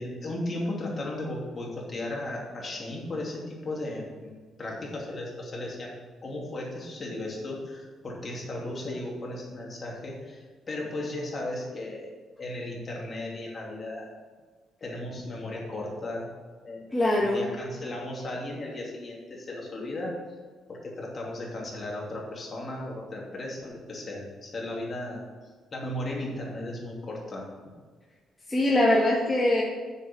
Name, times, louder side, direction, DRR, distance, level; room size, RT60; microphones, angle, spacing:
voice 1, 0.0-5.9 6.2-12.1 12.4-14.1 14.8-16.3 16.6-16.9 17.2-20.2 20.7-25.2 25.7-27.5, left 1 dB, 35° left, -2 dB, 2.8 m, -35 dB
voice 2, 16.9-17.5 28.5-29.6, left 1 dB, 15° left, -4 dB, 1.5 m, -22 dB
7.1 x 6.7 x 6.9 m, 1.4 s
cardioid pair, 90°, 0 cm